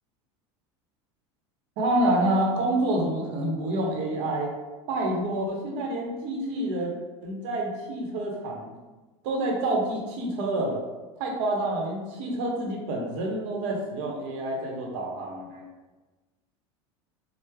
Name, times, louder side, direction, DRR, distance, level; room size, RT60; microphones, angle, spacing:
voice 1, 1.8-4.5 4.9-6.9 7.2-8.7 9.2-10.8 11.2-15.7, right 1 dB, 65° right, -1 dB, 0.8 m, -28 dB
3.2 x 2.0 x 3.3 m, 1.2 s
supercardioid pair, 105°, 16 cm